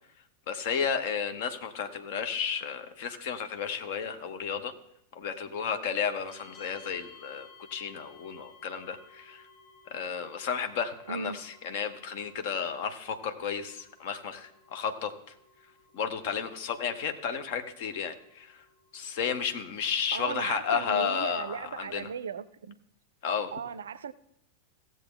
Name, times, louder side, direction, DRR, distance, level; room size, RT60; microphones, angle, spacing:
voice 1, 0.5-4.7 5.1-9.4 9.9-15.1 15.9-18.6 18.9-22.1 23.2-23.5, left 7 dB, 50° left, 1.0 m, -32 dB
sound 1, 6.3-20.6, left 4 dB, 10° left, 4.6 m, -57 dB
voice 2, 20.1-22.8 23.5-24.1, right 6 dB, 65° right, 0.4 m, -37 dB
16.0 x 7.4 x 3.7 m
figure-of-eight pair, 90°, 0 cm